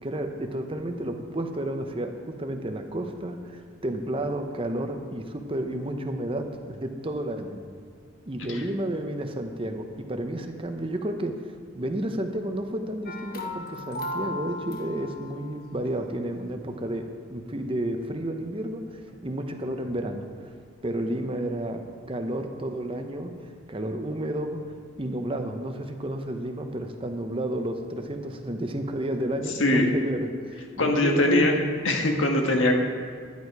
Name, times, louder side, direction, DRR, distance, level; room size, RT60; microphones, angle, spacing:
voice 1, 0.0-7.6 8.3-11.4 11.7-18.8 19.2-20.3 20.8-21.8 22.1-23.3 23.7-24.6 25.0-30.3 30.8-31.5, right 1 dB, 25° right, 5 dB, 0.8 m, -31 dB
sound 1, 13.1-15.5, left 2 dB, 45° left, 0.9 m, -36 dB
voice 2, 30.8-31.5 31.8-32.8, left 1 dB, 70° left, 2 dB, 1.5 m, -22 dB
11.0 x 10.5 x 4.8 m, 2.1 s
head